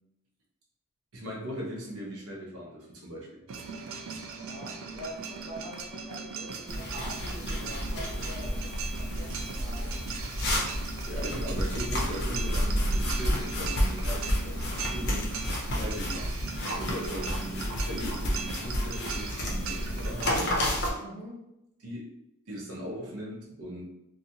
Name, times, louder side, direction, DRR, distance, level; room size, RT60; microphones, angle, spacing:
voice 1, 1.1-3.3 11.0-15.4 15.7-20.5 21.8-22.0 22.5-23.8, equal, 80° right, -3 dB, 0.7 m, -39 dB
sound 1, 3.5-20.5, right 3 dB, 60° right, 0.3 m, -36 dB
voice 2, 4.2-10.0 14.9-15.2 20.9-21.4, equal, 30° right, -7 dB, 0.8 m, -44 dB
sound 2, 6.7-20.9, equal, 50° left, 0.6 m, -31 dB
2.7 x 2.4 x 2.7 m, 0.85 s
head